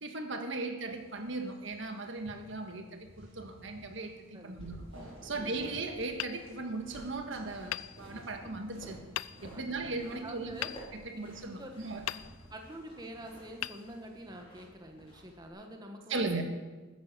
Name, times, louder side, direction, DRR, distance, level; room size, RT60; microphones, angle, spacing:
voice 1, 0.0-4.8 5.2-9.0 9.4-10.6 10.9-12.0 16.1-16.4, right 3 dB, 65° right, 5 dB, 1.6 m, -37 dB
sound 1, 0.8-14.4, equal, 90° right, 5.4 m, -58 dB
voice 2, 4.3-4.8 5.2-5.7 9.5-10.7 11.6-11.7 12.5-16.4, right 1 dB, 20° right, 3 dB, 1.3 m, -47 dB
sound 2, 4.6-15.5, right 1 dB, 25° left, 4.7 m, -52 dB
Hammer, 6.2-7.2 7.7-8.6 9.1-9.8 10.6-11.6 12.0-12.8 13.6-14.5, left 13 dB, 90° left, 0.4 m, -41 dB
13.0 x 10.0 x 6.7 m, 1.3 s
head